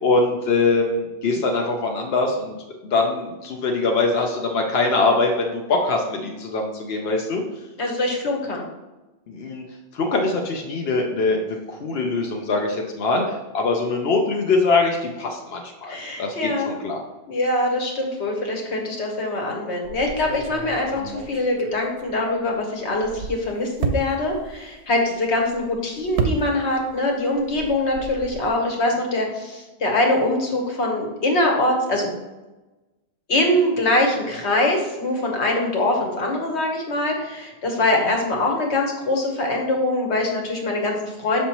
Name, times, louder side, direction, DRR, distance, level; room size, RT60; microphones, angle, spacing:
voice 1, 0.0-2.5 2.8-7.4 9.3-9.6 9.9-17.0, left 3 dB, 70° left, 1 dB, 1.0 m, -23 dB
voice 2, 7.8-8.7 15.9-16.8 17.3-32.1 33.3-41.4, left 1 dB, 90° left, 1 dB, 1.5 m, -23 dB
sound 1, 19.8-22.5 22.9-27.0 27.2-28.5, right 5 dB, 80° right, 1.0 m, -31 dB
6.8 x 5.3 x 3.0 m, 1.1 s
omnidirectional pair, 1.1 m